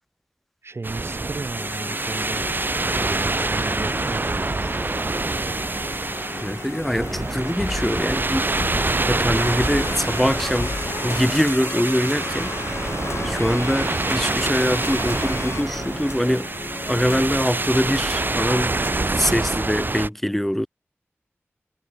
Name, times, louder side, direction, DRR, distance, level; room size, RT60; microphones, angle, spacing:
voice 1, 0.6-2.6 2.9-4.8 7.0-7.2, right 3 dB, 65° right, 1.5 m, -35 dB
sound 1, 0.8-20.1, right 2 dB, 45° right, 0.9 m, -26 dB
sound 2, 1.5-19.1, left 3 dB, 70° left, 1.9 m, -34 dB
voice 2, 6.4-8.5 9.1-10.8 11.0-12.6 12.9-13.0 13.2-16.5 16.9-18.7 19.2-20.7, equal, 5° left, 0.8 m, -23 dB
wide cardioid pair, 50°, 5 cm